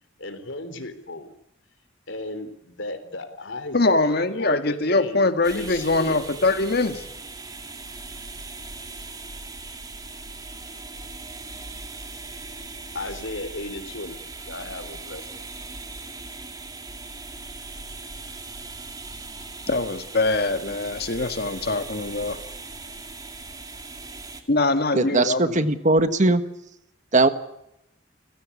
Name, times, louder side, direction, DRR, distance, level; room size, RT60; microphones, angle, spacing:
voice 1, 0.2-1.3 2.1-5.2 5.5-6.2 12.9-14.2 14.4-15.4, left 2 dB, 70° left, 10 dB, 3.5 m, -35 dB
voice 2, 3.7-7.0 19.7-22.4 24.5-25.5, left 2 dB, 55° left, 9 dB, 1.8 m, -23 dB
sound 1, 5.4-24.4, right 3 dB, 20° right, 2.4 m, -39 dB
voice 3, 24.9-26.4 27.1-27.3, right 2 dB, 40° right, 11 dB, 1.5 m, -19 dB
29.5 x 16.0 x 8.5 m, 0.84 s
head